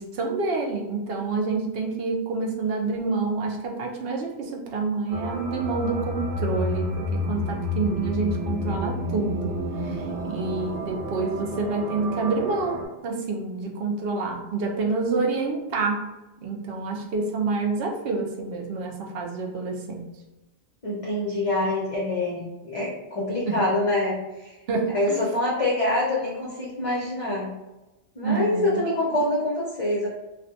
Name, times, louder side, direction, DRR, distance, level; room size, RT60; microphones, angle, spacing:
voice 1, 0.0-16.1 16.4-20.1 23.5-23.6 24.7-25.2 28.2-28.8, right 3 dB, 65° right, 0 dB, 0.8 m, -28 dB
sound 1, 5.1-12.8, left 1 dB, 80° right, 1.0 m, -30 dB
voice 2, 20.8-24.5 24.9-27.5 28.2-30.1, left 1 dB, 35° left, -6 dB, 0.6 m, -25 dB
2.4 x 2.3 x 3.9 m, 1.0 s
omnidirectional pair, 1.2 m